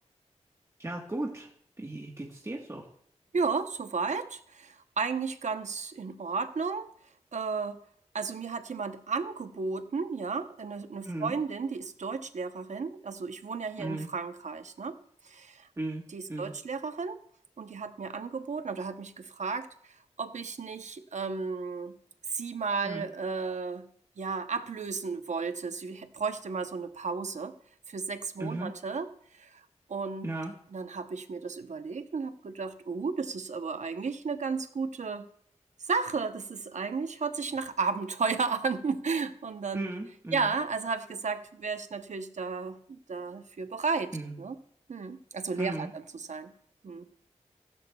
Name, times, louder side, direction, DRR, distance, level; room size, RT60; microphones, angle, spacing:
voice 1, 0.8-1.5 1.8-2.9 11.0-11.4 13.8-14.1 15.8-16.0 16.3-16.5 22.8-23.1 28.4-28.7 30.2-30.5 39.7-40.5 44.1-44.3 45.6-45.9, right 2 dB, 25° right, -1 dB, 1.3 m, -36 dB
voice 2, 3.3-6.9 7.3-7.8 8.1-15.0 15.2-15.7 16.1-17.2 17.6-22.0 22.3-23.9 24.2-27.5 27.9-29.1 29.3-29.6 29.9-30.3 30.7-35.3 35.8-39.9 40.3-44.1 44.4-44.5 44.9-46.5 46.8-47.0, right 4 dB, 75° right, 9 dB, 0.8 m, -33 dB
15.5 x 13.5 x 2.3 m, 0.64 s
wide cardioid pair, 95°, 12 cm